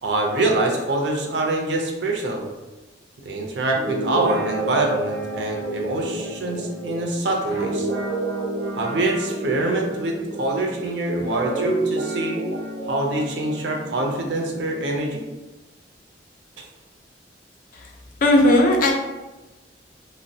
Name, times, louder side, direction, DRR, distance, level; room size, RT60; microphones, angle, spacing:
voice 1, 0.0-2.5 3.2-7.9 8.7-12.4 12.9-15.2 16.6-16.7, right 2 dB, 70° right, 1 dB, 0.5 m, -25 dB
Guitar, 3.7-10.9 11.3-15.0, right 2 dB, 85° right, 0.9 m, -30 dB
voice 2, 18.2-18.9, left 1 dB, 50° left, 2 dB, 0.4 m, -16 dB
2.9 x 2.0 x 2.7 m, 1.1 s
head